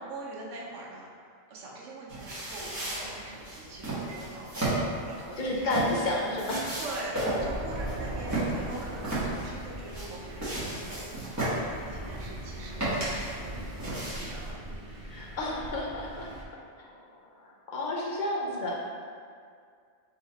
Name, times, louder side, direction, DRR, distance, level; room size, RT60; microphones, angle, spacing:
voice 1, 0.1-5.7 6.8-14.6, right 2 dB, 85° right, -3 dB, 1.1 m, -43 dB
sound 1, 2.1-14.5, right 1 dB, 15° right, 1.1 m, -34 dB
voice 2, 5.4-6.8 15.1-16.3 16.8-18.8, left 1 dB, 50° left, -3 dB, 0.6 m, -31 dB
Thunder, 7.4-16.4, right 1 dB, 50° right, 0.5 m, -40 dB
4.2 x 2.8 x 3.9 m, 2.2 s
omnidirectional pair, 1.2 m